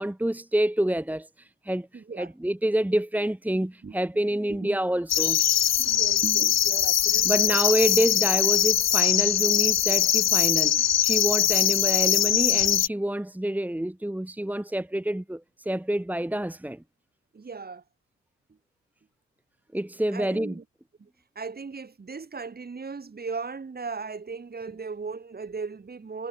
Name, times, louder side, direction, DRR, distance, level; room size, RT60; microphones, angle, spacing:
voice 1, 0.0-1.9 2.2-5.4 5.8-5.9 7.2-16.8 19.7-20.6, right 1 dB, 5° right, 2.6 m, -27 dB
voice 2, 1.9-2.3 3.6-4.2 4.5-4.8 5.9-7.6 17.3-17.8 20.1-20.6 21.0-21.1 21.4-26.3, right 4 dB, 30° right, 5.3 m, -37 dB
sound 1, 5.1-12.9, left 10 dB, 60° left, 1.7 m, -22 dB
cardioid pair, 90°, 30 cm